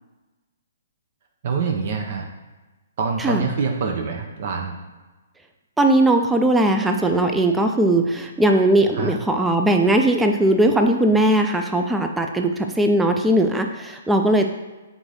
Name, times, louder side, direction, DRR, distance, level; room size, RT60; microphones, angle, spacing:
voice 1, 1.4-2.2 3.0-4.7 8.9-9.1, right 5 dB, 50° right, 2 dB, 0.6 m, -25 dB
voice 2, 5.8-14.5, right 1 dB, 5° right, 4 dB, 0.4 m, -19 dB
3.7 x 3.0 x 4.0 m, 1.2 s
figure-of-eight pair, 130°, 0 cm